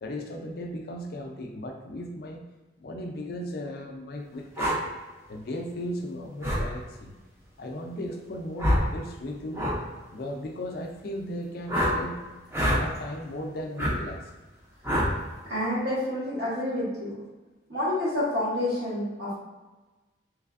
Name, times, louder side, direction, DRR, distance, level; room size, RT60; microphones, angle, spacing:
voice 1, 0.0-2.4 2.8-4.9 5.3-7.1 7.6-9.7 10.1-12.2 12.7-14.2, left 1 dB, 50° left, 3 dB, 0.4 m, -36 dB
sound 1, 4.6-4.8 6.4-6.6 8.6-8.9 9.5-9.8 11.7-12.0 12.5-12.8 13.8-13.9 14.8-15.1, equal, 15° right, 0.5 m, -24 dB
voice 2, 15.5-17.2 17.7-19.4, left 1 dB, 55° right, -8 dB, 1.5 m, -28 dB
3.2 x 3.2 x 2.4 m, 1.2 s
head